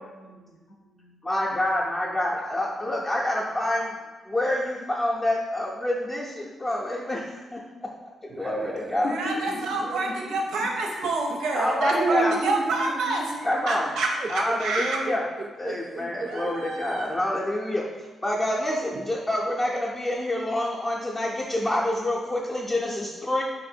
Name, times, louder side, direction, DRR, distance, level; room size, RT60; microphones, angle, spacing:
voice 1, 0.0-2.0 2.8-3.2 3.6-3.7 8.8-10.7, left 2 dB, 70° left, 1 dB, 0.6 m, -39 dB
voice 2, 1.2-3.9 4.2-7.6 8.2-9.1 11.5-12.3 13.4-13.9 14.3-15.2 15.6-17.8 18.2-23.4, left 1 dB, 25° left, -6 dB, 0.5 m, -27 dB
sound 1, 8.3-10.2 11.0-11.4 11.9-16.6 17.2-17.3 18.9-19.1, right 3 dB, 45° right, 0.3 m, -33 dB
voice 3, 9.1-15.0 16.2-17.2, right 3 dB, 85° right, 1 dB, 0.6 m, -28 dB
2.8 x 2.5 x 4.3 m, 1.3 s
cardioid pair, 95°, 0 cm